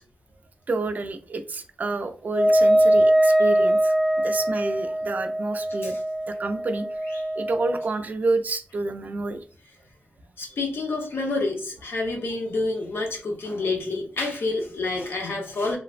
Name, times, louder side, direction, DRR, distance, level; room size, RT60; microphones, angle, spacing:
voice 1, 0.7-6.0 6.3-6.9 7.4-9.4, right 3 dB, 45° right, 8 dB, 0.3 m, -29 dB
Wind instrument woodwind instrument, 2.3-7.9, right 1 dB, 5° right, 0.7 m, -22 dB
voice 2, 10.4-15.8, left 3 dB, 75° left, 1 dB, 0.8 m, -28 dB
3.2 x 2.0 x 2.4 m, 0.39 s
wide cardioid pair, 155°, 4 cm